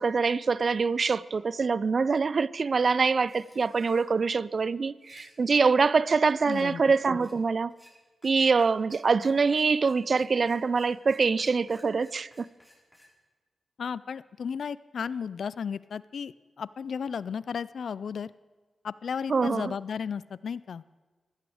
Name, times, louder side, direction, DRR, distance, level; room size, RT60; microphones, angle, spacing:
voice 1, 0.0-7.7 8.2-12.5 19.3-19.7, right 4 dB, 55° right, 0.4 m, -24 dB
sound 1, 3.3-4.1 4.9-5.3 6.5-6.6 7.2-7.3 7.7-7.9 8.2-8.3 8.6-8.7 8.9-13.1, equal, 5° left, 4.6 m, -57 dB
voice 2, 6.5-6.8 13.8-18.3 18.8-20.8, left 6 dB, 75° left, 0.3 m, -34 dB
16.0 x 12.0 x 4.9 m
cardioid pair, 65°, 0 cm